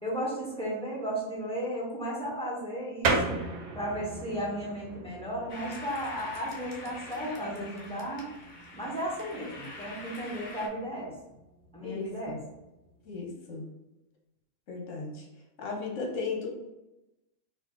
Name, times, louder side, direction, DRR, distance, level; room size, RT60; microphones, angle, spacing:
voice 1, 0.0-3.4 3.7-8.3 8.7-11.1 11.7-12.4, equal, 5° left, -5 dB, 1.2 m, -34 dB
sound 1, 3.0-13.2, right 3 dB, 90° right, 1.2 m, -37 dB
sound 2, 5.5-10.7, left 2 dB, 45° left, 0.7 m, -45 dB
voice 2, 11.8-12.4 13.0-13.7 14.7-15.3 15.6-16.5, left 4 dB, 65° left, 1 dB, 1.2 m, -35 dB
4.0 x 2.6 x 3.7 m, 0.96 s
omnidirectional pair, 1.5 m